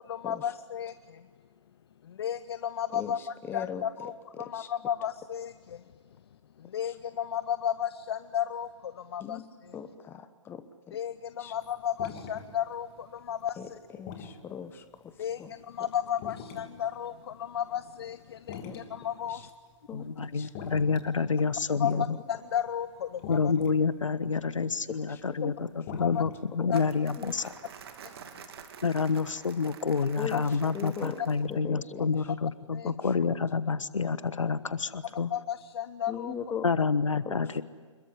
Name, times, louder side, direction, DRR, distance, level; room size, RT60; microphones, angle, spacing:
voice 1, 0.1-1.2 2.0-5.8 6.6-9.8 10.9-13.8 15.2-19.5 21.8-22.0 22.3-23.5 26.0-26.2 26.7-26.8 32.7-32.9 35.0-36.4, left 9 dB, 50° left, 13 dB, 0.9 m, -34 dB
voice 2, 3.5-3.8 4.4-4.7 9.2-9.4 9.7-11.0 11.4-11.5 13.6-13.7 14.0-15.1 15.4-15.5 18.6-18.8 19.9-20.5 21.8-22.0 25.1-25.5 27.2-27.3 30.2-30.4 30.7-31.2 31.5-32.1 32.8-32.9 36.1-36.7 37.2-37.4, left 8 dB, 15° left, 11 dB, 1.2 m, -39 dB
sound 1, 11.5-17.5 17.9-28.0, left 6 dB, 30° left, 3.2 m, -46 dB
voice 3, 19.9-22.0 23.3-27.5 28.8-35.3 36.6-37.6, left 5 dB, 75° left, 15 dB, 1.3 m, -28 dB
Crumpling crinkling, 26.7-31.6, right 7 dB, 50° right, 2.5 m, -48 dB
27.0 x 22.0 x 10.0 m, 1.5 s
figure-of-eight pair, 130°, 17 cm